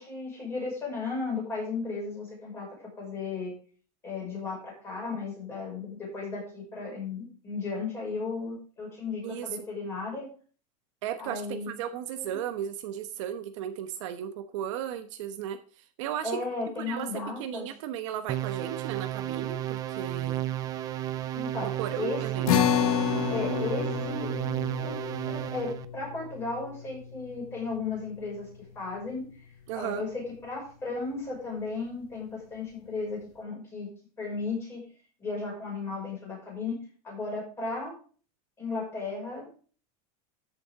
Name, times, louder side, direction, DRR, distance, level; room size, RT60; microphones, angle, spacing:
voice 1, 0.0-3.5 4.0-10.3 11.2-12.4 16.2-17.7 21.3-22.5 23.3-24.3 24.8-25.0 25.3-29.2 29.7-33.9 34.2-34.9 35.2-36.8 37.0-37.9 38.6-39.5, left 4 dB, 15° left, -3 dB, 6.1 m, -35 dB
voice 2, 11.0-16.4 16.8-17.1 17.4-20.4 21.6-22.5 29.7-30.0, right 10 dB, 55° right, 8 dB, 1.1 m, -35 dB
sound 1, 18.3-25.8, right 13 dB, 20° right, 0.5 m, -33 dB
sound 2, 22.5-29.1, left 9 dB, 75° left, 1.3 m, -31 dB
13.0 x 7.9 x 3.7 m, 0.40 s
supercardioid pair, 175°, 19 cm